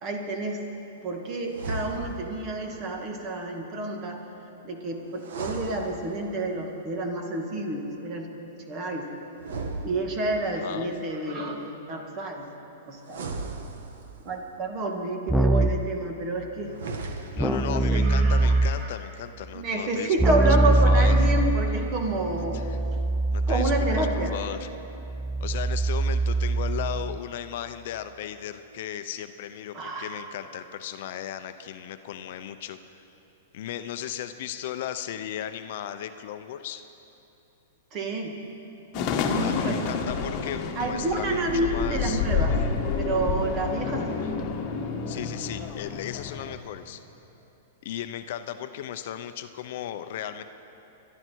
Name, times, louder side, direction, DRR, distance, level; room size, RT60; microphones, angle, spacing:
voice 1, 0.0-0.7 1.0-4.2 4.6-9.1 9.8-12.5 12.9-13.3 14.2-16.8 17.3-18.9 19.5-23.0 23.5-24.3 29.7-30.3 37.9-38.4 39.4-39.8 40.8-42.5 43.0-44.2, right 2 dB, 30° right, 2 dB, 1.9 m, -29 dB
sound 1, 1.5-2.4 5.1-6.5 9.4-10.5 13.0-14.3 16.6-17.6, right 3 dB, 70° right, 1.6 m, -36 dB
voice 2, 10.6-10.9 17.3-20.6 20.8-21.3 22.5-22.8 23.3-24.7 25.4-33.0 33.5-36.8 39.4-42.2 45.1-47.0 47.8-50.4, left 10 dB, 55° left, 10 dB, 0.6 m, -36 dB
Keyboard (musical), 15.3-15.9 17.4-19.0 20.2-27.2, right 2 dB, ahead, 0.3 m, -24 dB
sound 2, 38.9-46.6, left 5 dB, 35° left, 1.4 m, -29 dB
24.0 x 11.5 x 4.6 m, 2.9 s
hypercardioid pair, 150°, 0 cm